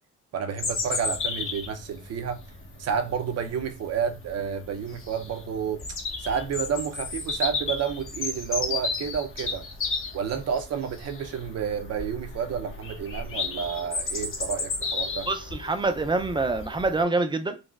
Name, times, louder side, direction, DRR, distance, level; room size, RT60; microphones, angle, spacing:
voice 1, 0.3-2.4 2.8-5.8 6.2-9.7 10.1-15.3, right 7 dB, 55° right, 0.6 m, -30 dB
Bird vocalization bird call bird song, 0.6-17.0, left 4 dB, 45° left, 0.8 m, -33 dB
voice 2, 15.3-17.6, right 3 dB, 15° right, 0.4 m, -26 dB
3.9 x 2.0 x 2.3 m
cardioid pair, 90°, 30 cm